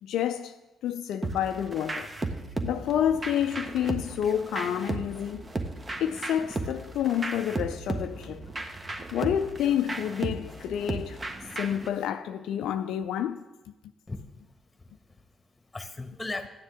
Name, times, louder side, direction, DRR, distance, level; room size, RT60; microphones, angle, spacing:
voice 1, 0.0-0.6 0.8-2.1 2.6-5.5 6.0-8.5 9.1-11.2 11.6-13.4, left 10 dB, 65° left, 0.3 m, -29 dB
sound 1, 1.2-11.9, right 2 dB, 30° right, 1.3 m, -35 dB
voice 2, 14.1-16.5, left 2 dB, 20° left, 1.3 m, -39 dB
13.0 x 9.6 x 3.6 m
hypercardioid pair, 40°, 0 cm